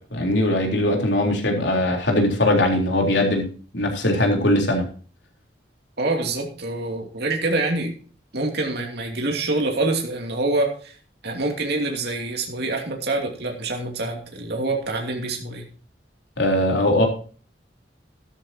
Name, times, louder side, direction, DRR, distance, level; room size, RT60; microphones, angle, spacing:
voice 1, 0.1-3.4 3.7-4.8 16.4-17.0, left 1 dB, 80° left, 1 dB, 3.7 m, -20 dB
voice 2, 6.0-7.9 8.3-10.9 11.2-15.6, right 2 dB, 65° right, 1 dB, 2.8 m, -26 dB
13.0 x 13.0 x 2.9 m, 0.40 s
head